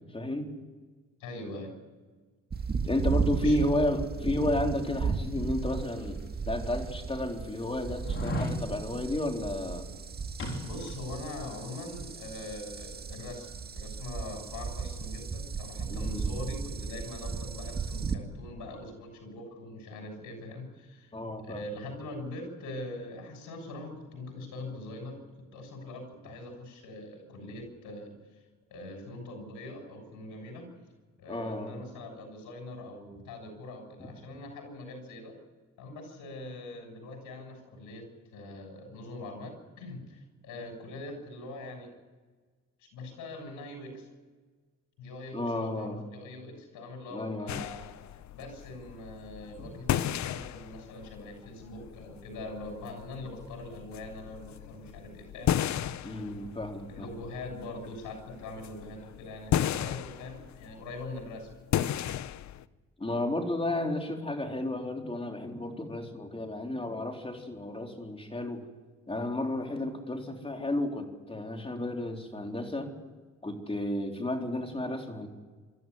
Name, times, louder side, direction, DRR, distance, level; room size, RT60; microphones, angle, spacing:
voice 1, 0.1-0.5 2.8-6.2 6.5-9.9 15.9-16.3 21.1-21.6 31.3-31.7 34.0-34.1 45.3-46.1 47.1-47.6 56.0-57.1 63.0-68.7 69.1-72.9 73.4-75.3, left 1 dB, 20° left, 3 dB, 3.9 m, -32 dB
voice 2, 1.2-1.7 3.4-3.6 10.6-13.5 13.7-21.1 21.4-25.2 25.5-28.4 28.7-30.7 31.2-35.3 35.8-41.9 42.8-44.1 45.0-47.9 48.3-55.6 56.9-61.5 69.8-69.9, left 2 dB, 90° left, 4 dB, 7.1 m, -42 dB
sound 1, 2.5-18.2, right 5 dB, 30° right, 2.0 m, -35 dB
sound 2, 6.1-6.2 6.8-6.9 8.0-8.6 10.4-11.1 11.4-11.5, equal, 45° left, 4.1 m, -34 dB
sound 3, 47.5-62.6, left 11 dB, 65° left, 0.8 m, -35 dB
26.5 x 13.5 x 9.6 m, 1.4 s
cardioid pair, 90°, 30 cm